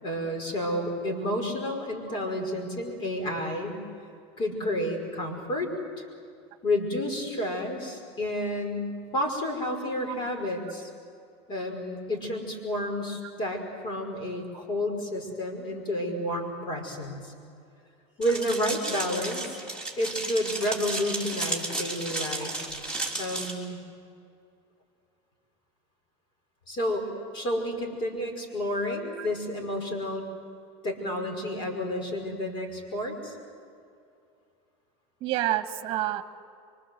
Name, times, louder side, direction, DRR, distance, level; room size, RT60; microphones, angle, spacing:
voice 1, 0.0-3.8 4.4-5.7 6.6-10.9 11.5-17.3 18.2-19.6 20.0-22.5 23.2-23.8 26.7-30.2 30.8-33.4, left 1 dB, 35° left, 4 dB, 5.2 m, -30 dB
sound 1, 18.2-23.5, right 2 dB, 5° left, 3.6 m, -33 dB
voice 2, 35.2-36.2, right 14 dB, 40° right, 10 dB, 1.5 m, -29 dB
25.5 x 25.0 x 7.9 m, 2.5 s
cardioid pair, 165°, 14 cm